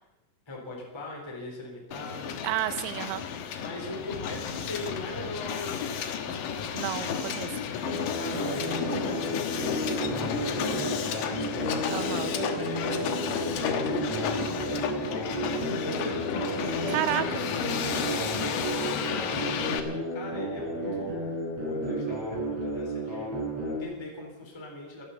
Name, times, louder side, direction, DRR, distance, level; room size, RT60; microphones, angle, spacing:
voice 1, 0.5-2.4 3.5-6.3 8.1-14.6 15.3-16.2 16.6-23.3 23.6-25.1, left 1 dB, 5° left, -2 dB, 3.1 m, -40 dB
Hiss, 1.9-19.8, left 8 dB, 65° left, 2.5 m, -32 dB
voice 2, 2.4-3.2 6.7-7.5 11.9-12.3 16.9-17.3, right 14 dB, 80° right, 12 dB, 2.6 m, -30 dB
sound 1, 7.8-23.8, right 1 dB, 35° right, 5.8 m, -32 dB
14.5 x 13.0 x 7.0 m, 1.0 s
omnidirectional pair, 4.9 m